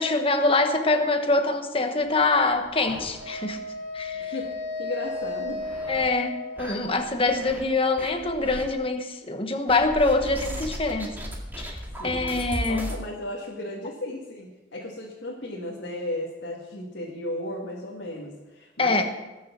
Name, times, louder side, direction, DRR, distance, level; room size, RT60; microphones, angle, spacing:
voice 1, 0.0-3.6 3.9-4.3 5.9-11.1 11.6-11.8 12.0-12.9 18.8-19.0, left 3 dB, 30° left, 6 dB, 1.2 m, -24 dB
sound 1, 2.1-3.6 4.0-4.1 4.4-4.5 5.1-6.1 6.6-7.6 8.0-8.6 9.7-13.0, equal, 10° right, 2.0 m, -37 dB
Wind instrument woodwind instrument, 3.2-7.3, left 3 dB, 70° right, 2.2 m, -34 dB
voice 2, 4.1-5.6 12.0-12.3 12.7-19.0, left 1 dB, 85° left, -3 dB, 2.1 m, -35 dB
20.0 x 7.1 x 6.0 m, 1.1 s
head